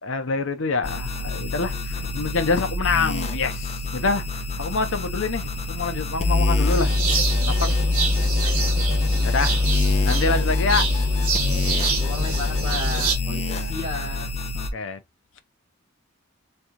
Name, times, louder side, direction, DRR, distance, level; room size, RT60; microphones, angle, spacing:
voice 1, 0.0-4.2 4.6-6.9 7.5-7.8 9.2-9.5 10.0-10.9 13.5-13.7 14.6-15.0, left 4 dB, 65° left, 0.7 m, -26 dB
sound 1, 0.8-14.7, left 3 dB, 30° left, 0.8 m, -24 dB
sound 2, 6.7-13.2, right 5 dB, 85° right, 1.2 m, -28 dB
voice 2, 8.2-8.8 12.0-14.3, left 2 dB, 25° right, 1.6 m, -34 dB
3.6 x 3.2 x 2.9 m
head